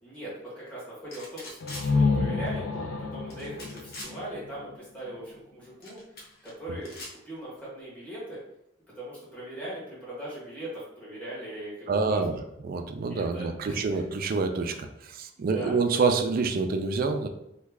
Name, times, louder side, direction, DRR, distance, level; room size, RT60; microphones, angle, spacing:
voice 1, 0.0-6.0 6.4-6.9 7.2-8.4 8.9-12.2 13.1-14.0 15.4-15.8, right 1 dB, 10° left, -8 dB, 1.4 m, -40 dB
sound 1, 1.1-1.9 3.3-4.1 5.8-6.5 6.8-7.1, left 1 dB, 55° left, 0.9 m, -42 dB
sound 2, 1.6-5.3, left 4 dB, 85° left, 0.4 m, -29 dB
voice 2, 11.9-12.3 12.6-17.3, right 4 dB, 45° right, 6 dB, 0.4 m, -27 dB
3.1 x 2.3 x 3.5 m, 0.81 s
head